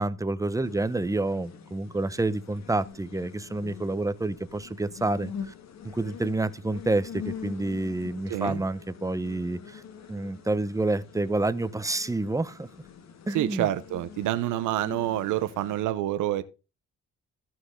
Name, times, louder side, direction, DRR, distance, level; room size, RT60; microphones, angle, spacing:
voice 1, 0.0-5.5 5.8-9.8 10.1-12.7 13.3-13.7, right 2 dB, 10° right, 1.0 m, -28 dB
sound 1, 0.6-15.8, left 7 dB, 60° left, 2.1 m, -44 dB
voice 2, 8.3-8.6 13.3-16.4, right 13 dB, 90° right, 0.9 m, -27 dB
14.5 x 6.2 x 3.8 m
cardioid pair, 90°, 30 cm